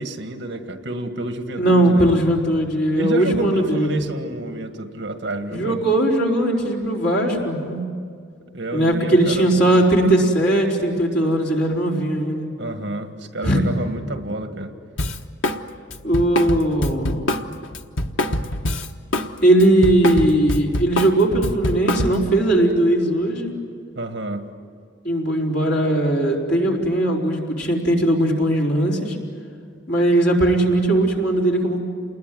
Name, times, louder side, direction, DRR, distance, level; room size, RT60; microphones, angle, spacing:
voice 1, 0.0-2.1 2.9-5.8 8.5-9.9 12.6-14.7 24.0-24.5, right 1 dB, 65° right, 6 dB, 1.8 m, -29 dB
voice 2, 1.6-4.0 5.5-7.8 8.7-12.5 13.4-13.6 16.0-17.3 19.4-23.5 25.0-29.2 29.9-31.8, right 1 dB, 60° left, -2 dB, 4.5 m, -19 dB
Drum kit, 15.0-15.6 15.9-19.3 19.6-22.3, left 1 dB, 85° left, 1.2 m, -24 dB
28.5 x 21.0 x 9.4 m, 2.1 s
head